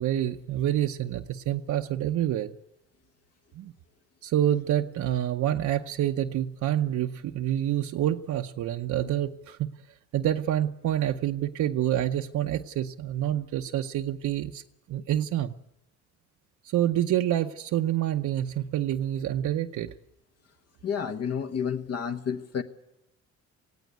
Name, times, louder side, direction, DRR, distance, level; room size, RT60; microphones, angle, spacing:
voice 1, 0.0-2.5 3.5-3.7 4.2-9.7 10.1-14.6 14.9-15.5 16.6-19.9, right 12 dB, 70° right, 4 dB, 0.8 m, -27 dB
voice 2, 20.8-22.6, left 7 dB, 55° left, 7 dB, 1.3 m, -30 dB
19.0 x 16.5 x 9.3 m, 0.89 s
cardioid pair, 90°, 30 cm